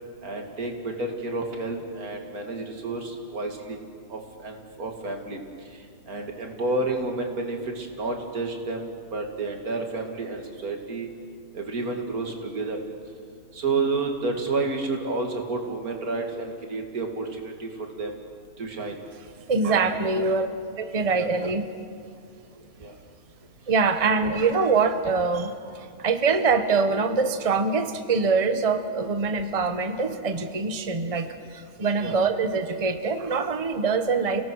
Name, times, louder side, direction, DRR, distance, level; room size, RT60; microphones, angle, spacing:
voice 1, 0.2-3.8 4.1-5.4 6.1-11.1 11.5-12.8 13.5-17.7 18.0-18.1 18.6-19.0 19.6-19.8 20.2-20.3 21.1-21.3 22.8-22.9 24.0-24.4 32.0-32.2, right 3 dB, 85° right, 3 dB, 2.8 m, -30 dB
voice 2, 19.5-20.5 20.8-21.7 23.7-34.4, right 4 dB, 25° right, 8 dB, 1.0 m, -24 dB
30.0 x 18.0 x 6.3 m, 2.2 s
omnidirectional pair, 1.5 m